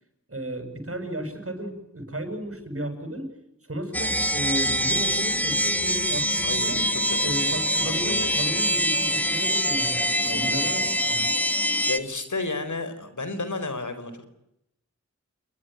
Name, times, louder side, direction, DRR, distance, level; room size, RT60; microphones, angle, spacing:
voice 1, 0.3-3.3 3.7-6.8 7.2-11.3, right 1 dB, 50° right, 7 dB, 7.9 m, -34 dB
sound 1, 3.9-12.0, equal, 5° left, 2.4 m, -24 dB
voice 2, 6.4-7.3 7.8-8.3 10.2-10.9 11.9-14.2, left 3 dB, 85° left, 10 dB, 4.7 m, -32 dB
29.0 x 21.5 x 9.4 m, 0.83 s
wide cardioid pair, 55°, 29 cm